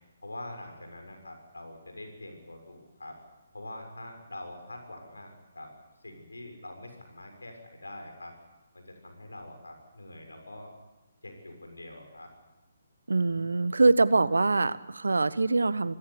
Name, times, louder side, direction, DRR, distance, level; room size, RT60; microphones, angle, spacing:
voice 1, 0.2-3.2 3.5-5.7 6.0-8.3 8.7-10.7 11.2-12.3, left 1 dB, 80° left, 4 dB, 6.8 m, -44 dB
voice 2, 13.1-15.9, right 3 dB, 75° right, 17 dB, 1.0 m, -24 dB
25.5 x 17.0 x 8.5 m, 1.0 s
figure-of-eight pair, 140°, 0 cm